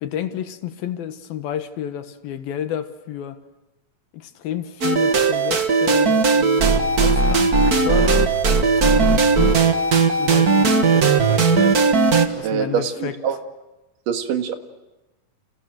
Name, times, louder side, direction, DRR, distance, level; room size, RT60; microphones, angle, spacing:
voice 1, 0.0-3.4 4.1-9.7 10.2-11.8 12.3-13.2, left 10 dB, 75° left, 10 dB, 3.1 m, -31 dB
sound 1, 4.8-12.3, right 4 dB, 45° right, 1.1 m, -17 dB
voice 2, 12.4-13.4 14.1-14.5, right 8 dB, 65° right, 6 dB, 3.2 m, -24 dB
30.0 x 29.0 x 6.6 m, 1.1 s
omnidirectional pair, 4.3 m